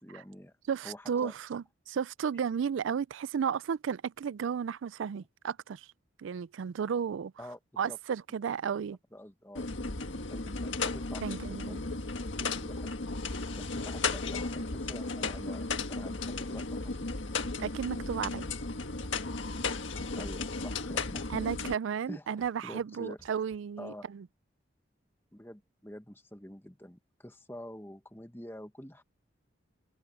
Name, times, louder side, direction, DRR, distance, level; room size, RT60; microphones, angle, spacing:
voice 1, 0.0-0.5 0.8-1.3 7.4-7.6 7.9-8.0 9.1-9.6 10.3-12.0 12.4-12.9 13.5-15.6 15.9-17.1 20.1-21.4 22.1-23.2 23.8-24.1 25.3-29.0, left 1 dB, 10° left, 1.3 m, -47 dB
voice 2, 0.7-5.9 6.2-7.3 7.8-9.0 11.2-11.8 17.6-18.5 21.3-24.3, right 7 dB, 85° right, 0.4 m, -33 dB
sound 1, 9.5-21.7, left 3 dB, 85° left, 1.6 m, -35 dB
Scratching (performance technique), 17.4-17.6 17.9-18.3 19.0-19.6 20.0-20.4 20.7-20.9 21.1-21.6 22.3-22.8 23.2-23.6, equal, 30° right, 3.2 m, -60 dB
open air
head